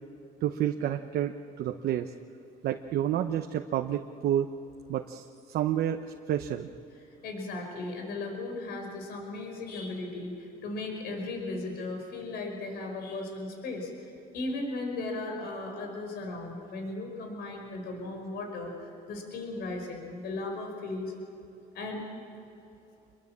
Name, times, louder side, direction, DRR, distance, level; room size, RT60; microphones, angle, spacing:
voice 1, 0.4-2.1 2.6-4.5 4.9-6.7, right 11 dB, 70° right, 6 dB, 1.0 m, -30 dB
voice 2, 7.2-21.1 21.7-22.1, left 2 dB, 75° left, 3 dB, 5.3 m, -36 dB
27.0 x 22.5 x 7.5 m, 2.7 s
cardioid pair, 110°, 17 cm